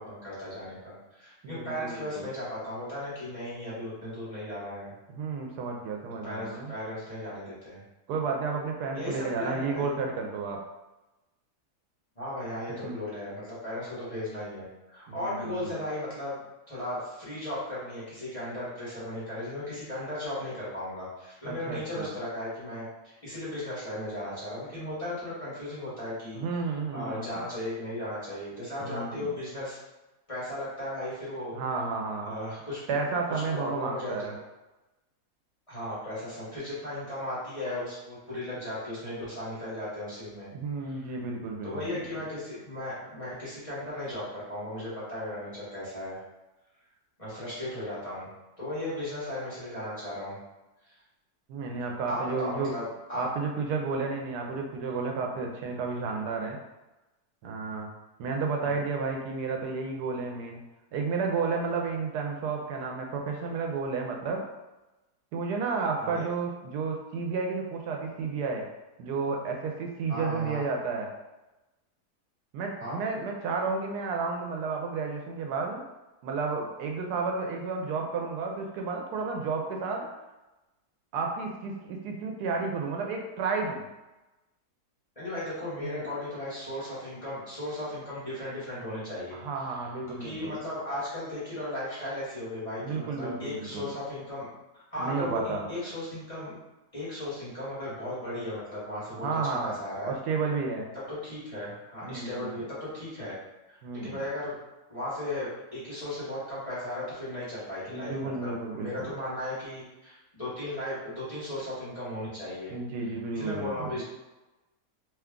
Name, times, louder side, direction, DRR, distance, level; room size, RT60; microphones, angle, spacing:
voice 1, 0.0-4.9 6.2-7.8 8.9-9.9 12.2-16.4 16.7-26.4 26.9-29.8 30.3-31.5 32.2-32.8 33.5-34.3 35.7-40.5 40.8-41.1 41.6-46.2 47.2-48.3 48.6-50.4 52.1-53.2 58.6-58.8 66.0-66.3 70.1-70.6 72.8-73.0 85.2-89.4 89.7-89.8 90.1-94.5 94.7-96.6 96.9-100.1 101.1-103.4 103.7-104.6 104.9-112.7 113.3-114.0, left 1 dB, 25° left, -11 dB, 1.1 m, -36 dB
voice 2, 1.4-2.3 5.1-6.7 8.1-10.6 12.8-13.0 15.1-15.8 21.5-22.1 26.3-27.4 28.8-29.3 31.5-32.3 32.9-34.4 40.5-42.2 51.5-52.7 53.1-56.6 57.4-57.9 58.2-60.6 60.9-64.5 65.3-68.6 69.0-71.1 72.5-75.8 76.2-80.1 81.1-83.9 85.8-86.1 89.3-90.5 92.8-93.9 95.0-95.7 99.1-99.8 100.0-100.9 102.0-102.6 103.8-104.2 107.9-109.1 112.7-114.0, right 4 dB, 80° right, 1 dB, 1.1 m, -32 dB
2.8 x 2.3 x 3.6 m, 1.0 s
omnidirectional pair, 1.7 m